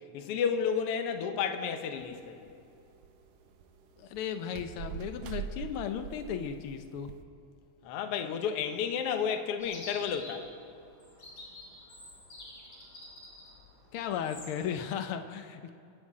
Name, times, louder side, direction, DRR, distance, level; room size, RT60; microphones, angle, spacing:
voice 1, 0.1-2.5 7.8-10.5, left 7 dB, 60° left, 6 dB, 1.8 m, -31 dB
sound 1, 2.0-7.2, right 8 dB, 80° right, 2.1 m, -44 dB
voice 2, 4.0-7.1 13.9-15.7, left 8 dB, 80° left, 7 dB, 1.2 m, -35 dB
Chirp tweet, 9.6-14.7, left 1 dB, 40° left, 4.6 m, -49 dB
27.0 x 10.0 x 4.9 m, 2.5 s
omnidirectional pair, 3.4 m